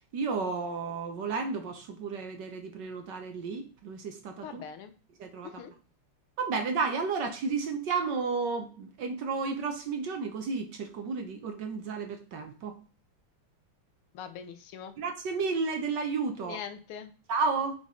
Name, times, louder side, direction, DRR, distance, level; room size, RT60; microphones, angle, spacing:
voice 1, 0.1-4.6 5.2-5.6 6.4-12.8 15.0-16.6 17.3-17.7, right 4 dB, 60° right, 5 dB, 1.3 m, -32 dB
voice 2, 4.4-5.0 5.4-5.7 14.1-14.9 16.4-17.2, left 8 dB, 80° left, 8 dB, 1.6 m, -42 dB
7.2 x 3.7 x 3.7 m, 0.38 s
omnidirectional pair, 2.4 m